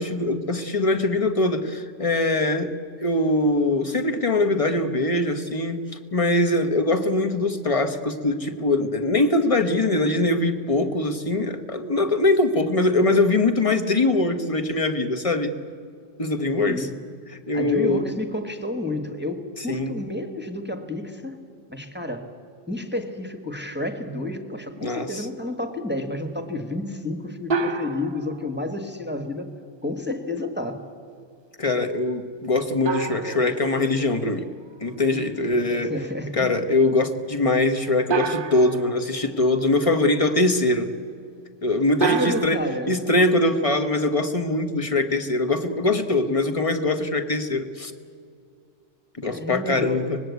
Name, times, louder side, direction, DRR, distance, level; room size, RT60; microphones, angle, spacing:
voice 1, 0.0-2.7 3.0-5.8 6.1-15.5 16.2-16.9 17.3-18.0 19.6-20.0 24.8-25.3 31.6-34.5 34.8-35.9 36.3-40.9 41.6-47.9 49.2-50.2, left 2 dB, 25° left, 8 dB, 1.4 m, -22 dB
voice 2, 17.5-21.4 21.7-22.3 22.7-29.5 29.8-30.8 35.5-36.6 42.0-42.9 49.3-50.1, left 1 dB, 10° right, 6 dB, 1.5 m, -30 dB
sound 1, 27.5-28.6 32.8-34.4 38.1-39.3 42.0-42.5, right 4 dB, 45° right, 1.2 m, -28 dB
24.5 x 20.0 x 8.3 m, 2.3 s
omnidirectional pair, 1.3 m